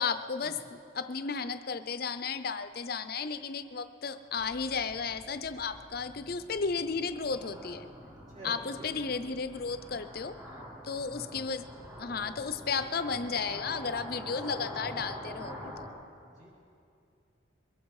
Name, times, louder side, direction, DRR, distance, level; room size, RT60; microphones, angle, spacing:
voice 1, 0.0-7.9 8.4-10.4 10.8-11.6 12.0-15.9, left 5 dB, 50° left, 11 dB, 0.6 m, -34 dB
sound 1, 4.3-15.9, equal, 20° right, 4.0 m, -46 dB
voice 2, 8.1-9.2 11.0-11.4 16.2-16.5, equal, 35° right, -7 dB, 2.2 m, -49 dB
22.5 x 13.5 x 4.8 m, 2.5 s
head